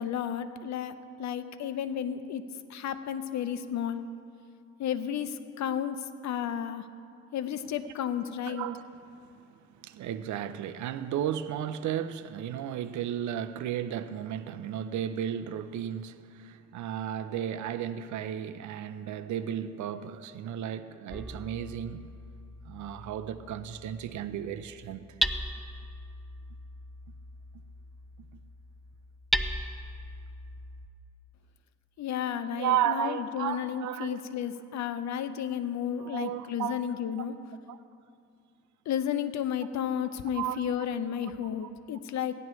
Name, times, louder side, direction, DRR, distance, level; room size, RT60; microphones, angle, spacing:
voice 1, 0.0-2.4 2.7-4.1 4.8-6.9 7.3-8.7 32.0-37.3 38.9-42.3, left 9 dB, 65° left, 0.7 m, -32 dB
voice 2, 8.5-8.8 9.8-22.1 22.6-25.1 32.5-34.2 36.0-36.8 37.7-37.8 40.3-40.6, right 10 dB, 70° right, 0.6 m, -34 dB
Hammer, 21.1-30.9, equal, ahead, 0.4 m, -37 dB
17.0 x 11.0 x 3.1 m
cardioid pair, 90°, 30 cm